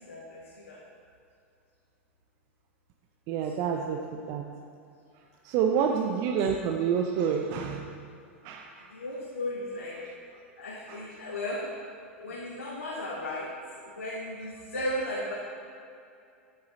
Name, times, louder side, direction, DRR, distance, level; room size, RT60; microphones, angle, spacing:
voice 1, 0.1-0.8 3.7-3.8 8.9-10.0 10.6-11.7 12.2-13.5 13.8-15.3, left 1 dB, 85° left, -5 dB, 1.7 m, -35 dB
voice 2, 3.3-4.4 5.4-8.0 8.4-8.7 10.0-10.1 10.9-11.0, right 7 dB, 45° right, 3 dB, 0.7 m, -28 dB
12.5 x 8.8 x 4.2 m, 2.5 s
figure-of-eight pair, 95°, 7 cm